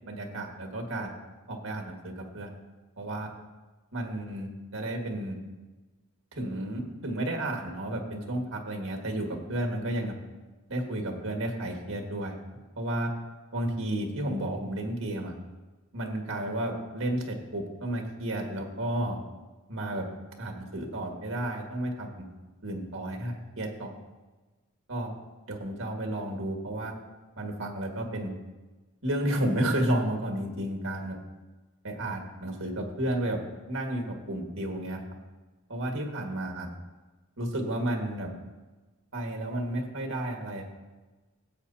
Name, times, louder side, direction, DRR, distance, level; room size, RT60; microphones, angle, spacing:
voice 1, 0.1-1.2 1.5-2.5 3.0-3.3 3.9-5.4 6.3-10.1 10.7-12.4 12.8-13.1 13.5-15.3 15.9-19.2 19.7-20.0 20.4-22.3 22.6-23.9 24.9-25.1 25.5-26.9 27.4-28.4 29.0-31.2 31.8-33.4 33.7-35.0 35.7-36.7 37.4-38.3 39.1-40.7, right 1 dB, 65° right, 2 dB, 1.8 m, -32 dB
16.5 x 8.0 x 2.8 m, 1.2 s
head